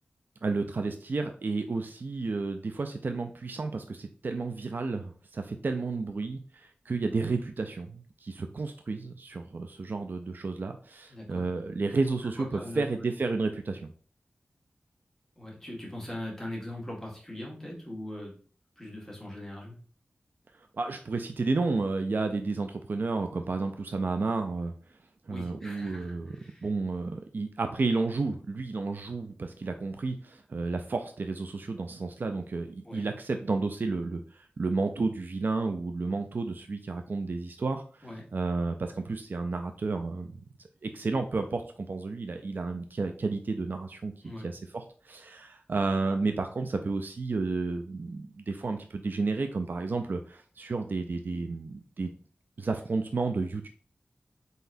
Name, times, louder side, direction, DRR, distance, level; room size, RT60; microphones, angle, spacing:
voice 1, 0.4-13.9 20.8-24.7 25.3-26.4 26.6-37.8 38.3-40.4 40.8-44.1 44.4-52.1 52.6-53.7, right 3 dB, 55° right, 6 dB, 0.4 m, -31 dB
voice 2, 11.1-11.5 12.4-12.8 15.4-18.3 18.8-19.8 25.3-26.7 32.9-33.1 38.0-38.2 44.2-44.5, left 1 dB, 10° left, -4 dB, 1.7 m, -41 dB
3.9 x 3.9 x 2.6 m, 0.44 s
wide cardioid pair, 75°, 4 cm